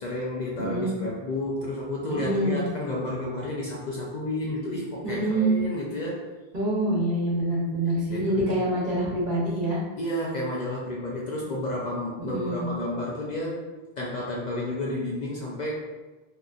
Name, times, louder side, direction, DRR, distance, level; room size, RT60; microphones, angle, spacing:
voice 1, 0.0-6.2 8.1-8.5 10.0-13.6 14.0-15.7, left 1 dB, 55° left, -3 dB, 0.5 m, -31 dB
voice 2, 0.6-0.9 2.1-2.6 5.0-5.6 6.5-9.8 12.2-12.7, right 1 dB, 55° right, -6 dB, 1.1 m, -26 dB
3.7 x 2.8 x 2.4 m, 1.2 s
omnidirectional pair, 1.0 m